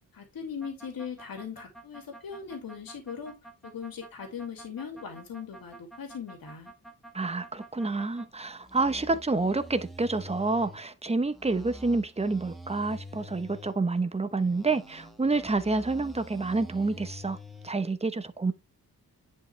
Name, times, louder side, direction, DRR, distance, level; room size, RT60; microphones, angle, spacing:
voice 1, 0.1-3.3 3.6-6.7, left 6 dB, 70° left, 2.5 m, -39 dB
sound 1, 0.6-8.3 8.6-10.8 11.3-13.8 14.3-17.7, equal, ahead, 1.6 m, -47 dB
voice 2, 7.1-17.4 17.6-18.5, right 3 dB, 15° right, 1.0 m, -28 dB
10.0 x 5.1 x 3.3 m
wide cardioid pair, 125°, 36 cm